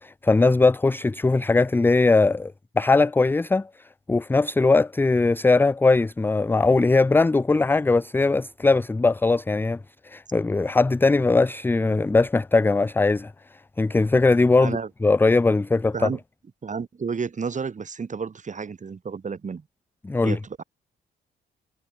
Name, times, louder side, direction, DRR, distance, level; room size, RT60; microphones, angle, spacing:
voice 1, 0.0-3.7 4.1-9.8 10.0-13.3 13.8-15.9 20.0-20.4, left 3 dB, 10° left, 0.4 m, -20 dB
voice 2, 14.6-14.9 15.9-16.2 16.6-19.6 20.2-20.6, right 5 dB, 40° right, 6.4 m, -31 dB
cardioid pair, 90°, 20 cm